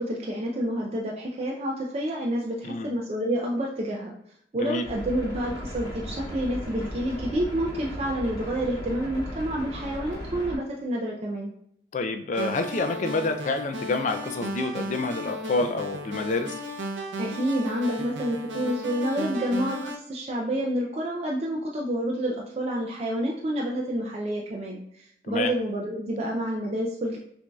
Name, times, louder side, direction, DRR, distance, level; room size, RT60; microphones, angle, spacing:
voice 1, 0.0-4.1 4.5-11.5 17.2-27.2, equal, 35° right, -2 dB, 0.4 m, -29 dB
sound 1, 4.8-10.6, equal, 20° left, 1.2 m, -36 dB
voice 2, 11.9-16.5 25.3-25.5, left 3 dB, 40° left, 6 dB, 0.3 m, -28 dB
sound 2, 12.3-20.0, equal, 80° right, 0.6 m, -35 dB
6.0 x 2.6 x 2.3 m, 0.71 s
head